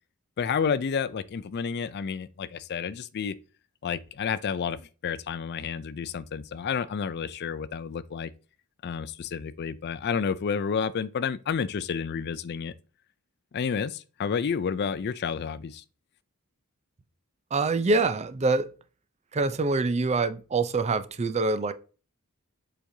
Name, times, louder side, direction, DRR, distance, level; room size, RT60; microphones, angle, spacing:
voice 1, 0.4-3.3 3.8-8.3 8.8-12.7 13.5-15.8, left 6 dB, 50° left, 0.4 m, -30 dB
voice 2, 17.5-18.7 19.3-21.7, right 3 dB, 30° right, 0.4 m, -25 dB
7.5 x 5.0 x 2.7 m
head